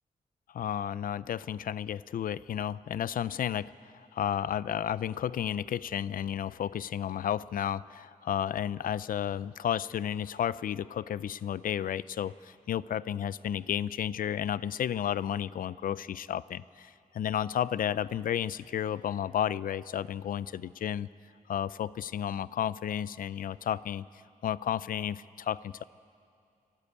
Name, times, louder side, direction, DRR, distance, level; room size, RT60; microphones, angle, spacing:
voice 1, 0.5-21.1 21.5-24.0 24.4-25.8, left 9 dB, 75° left, 18 dB, 0.5 m, -32 dB
29.0 x 12.5 x 8.3 m, 2.4 s
wide cardioid pair, 125°, 15 cm